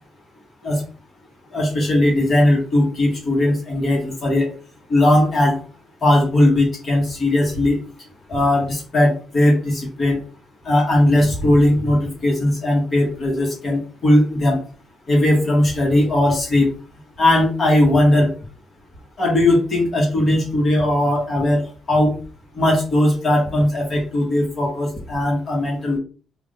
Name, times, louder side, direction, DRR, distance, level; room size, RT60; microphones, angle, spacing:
voice 1, 1.5-4.5 4.9-5.6 6.0-7.8 8.3-10.2 10.6-14.6 15.1-16.7 17.2-18.3 19.2-21.6 21.9-22.1 22.5-26.0, left 1 dB, 45° left, -2 dB, 1.6 m, -18 dB
3.4 x 2.6 x 3.6 m, 0.38 s
cardioid pair, 90°, 0 cm